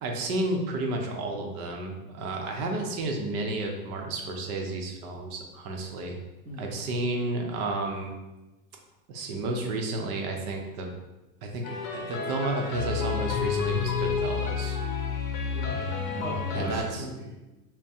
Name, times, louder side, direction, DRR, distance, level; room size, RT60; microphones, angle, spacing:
voice 1, 0.0-6.2 6.6-8.2 9.1-10.9 11.4-11.6 11.9-14.8 16.5-17.1, right 2 dB, 65° right, 2 dB, 0.8 m, -31 dB
voice 2, 6.4-6.8 15.5-15.9 16.2-17.3, right 1 dB, 25° right, -7 dB, 0.5 m, -39 dB
sound 1, 11.6-16.8, left 5 dB, 60° left, 0.7 m, -30 dB
3.5 x 2.2 x 4.1 m, 1.1 s
supercardioid pair, 170°, 47 cm